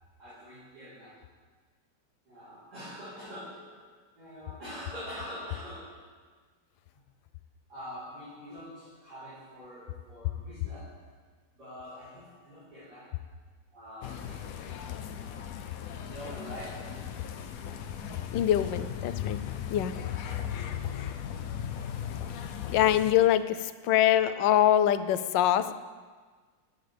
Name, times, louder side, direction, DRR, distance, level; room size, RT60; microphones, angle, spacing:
voice 1, 0.2-1.2 2.3-6.1 7.7-11.1 11.5-13.2 13.7-14.5 15.0-15.5 16.0-17.8 18.2-18.8 20.5-20.9, equal, 60° right, -13 dB, 4.4 m, -45 dB
sound 1, 14.0-23.1, left 8 dB, 65° left, 0.9 m, -38 dB
voice 2, 18.3-19.4 19.7-19.9 22.7-25.7, left 11 dB, 85° left, 12 dB, 1.3 m, -24 dB
14.5 x 10.0 x 3.3 m, 1.5 s
omnidirectional pair, 1.9 m